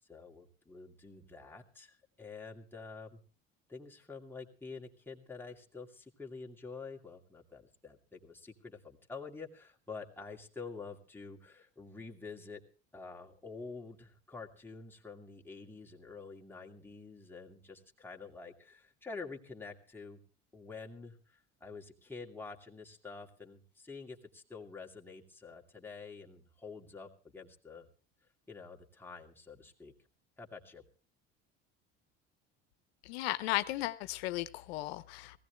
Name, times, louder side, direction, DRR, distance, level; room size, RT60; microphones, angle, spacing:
voice 1, 0.1-3.2 3.7-12.6 12.9-20.2 20.5-27.9 28.5-29.9 30.4-30.8, left 4 dB, 5° left, -1 dB, 2.4 m, -48 dB
voice 2, 33.0-35.4, left 17 dB, 90° left, 13 dB, 0.8 m, -35 dB
19.0 x 16.0 x 3.4 m, 0.36 s
supercardioid pair, 95°, 30 cm